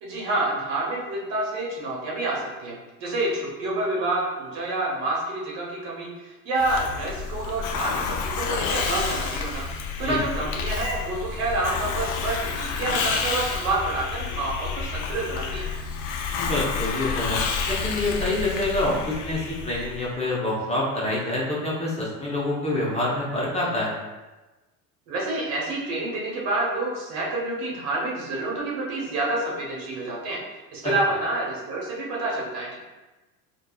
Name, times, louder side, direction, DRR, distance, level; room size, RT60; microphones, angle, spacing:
voice 1, 0.0-9.6 10.0-15.7 25.1-30.4 30.7-32.8, right 2 dB, 65° right, -3 dB, 1.1 m, -28 dB
Hiss, 6.6-20.1, left 5 dB, 45° left, 0.4 m, -29 dB
voice 2, 16.3-17.4 17.7-23.9, left 2 dB, 15° left, -6 dB, 0.7 m, -26 dB
3.5 x 2.3 x 2.3 m, 1.1 s
hypercardioid pair, 85°, 44 cm